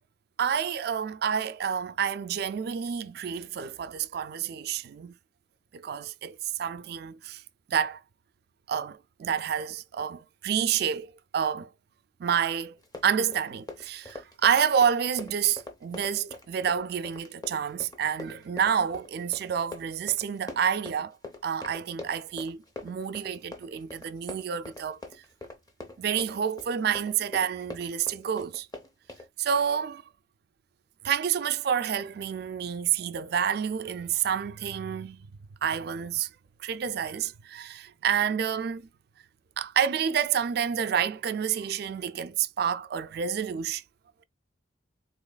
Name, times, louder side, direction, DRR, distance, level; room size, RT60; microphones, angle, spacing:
voice 1, 0.4-5.2 5.7-7.4 7.7-8.0 8.7-11.7 12.2-12.8 13.0-21.2 21.4-25.0 26.0-28.7 29.4-30.0 31.0-35.3 35.6-36.3 36.6-38.9 39.6-43.8, right 8 dB, 50° right, 0.3 m, -29 dB
Run, 12.8-29.3, left 2 dB, 20° left, 0.7 m, -43 dB
3.9 x 2.9 x 2.2 m
head